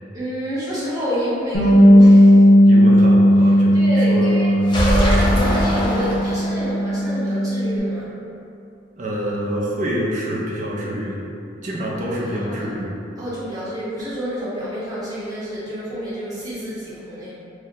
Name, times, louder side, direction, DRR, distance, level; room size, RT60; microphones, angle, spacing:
voice 1, 0.1-2.4 3.7-4.5 5.0-8.1 12.4-12.6 13.2-17.3, equal, 20° right, -11 dB, 0.9 m, -29 dB
Bass guitar, 1.5-7.8, equal, 65° left, 0.7 m, -14 dB
voice 2, 2.7-4.7 9.0-11.3 11.6-13.0, equal, 45° right, -4 dB, 0.5 m, -26 dB
sound 1, 4.7-6.7, equal, 25° left, 0.4 m, -20 dB
2.7 x 2.2 x 3.6 m, 2.6 s
head